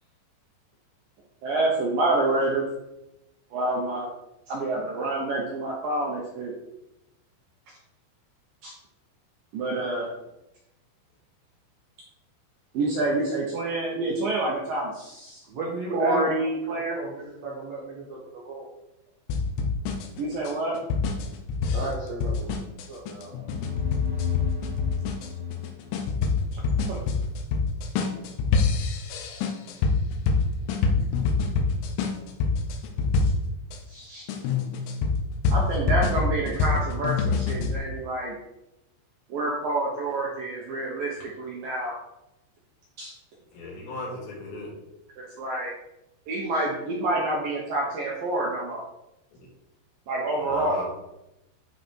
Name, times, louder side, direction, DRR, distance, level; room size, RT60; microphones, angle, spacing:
voice 1, 1.4-2.6 3.5-4.1 4.5-6.5 8.6-8.7 9.5-10.1 12.7-15.4 15.9-17.0 20.2-20.8 23.3-23.5 26.8-27.0 33.9-34.3 35.5-38.4 39.3-41.9 43.0-43.1 45.2-45.7 46.3-48.8 50.1-50.8, right 2 dB, 70° right, -3 dB, 2.2 m, -27 dB
voice 2, 15.5-18.7 21.7-22.6 22.9-23.3, right 2 dB, 85° right, -3 dB, 1.5 m, -34 dB
sound 1, 19.3-33.8 34.3-37.8, left 4 dB, 85° left, 3.6 m, -26 dB
sound 2, 23.1-26.8, left 9 dB, 20° right, 0.6 m, -33 dB
voice 3, 43.5-44.7 49.4-49.5 50.4-50.8, left 1 dB, 70° left, -5 dB, 5.6 m, -36 dB
11.0 x 4.8 x 4.6 m, 0.91 s
omnidirectional pair, 5.6 m